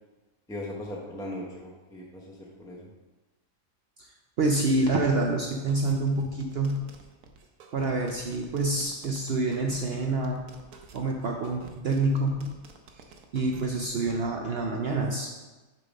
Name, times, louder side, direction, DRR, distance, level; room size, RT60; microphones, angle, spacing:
voice 1, 0.5-2.9, left 1 dB, 5° left, -4 dB, 0.5 m, -39 dB
voice 2, 4.4-6.9 7.7-10.4 10.9-12.5 13.3-15.3, right 2 dB, 65° right, 1 dB, 0.6 m, -27 dB
sound 1, 5.7-14.2, right 4 dB, 90° right, 1.2 m, -50 dB
6.7 x 3.4 x 5.1 m, 1.2 s
omnidirectional pair, 1.6 m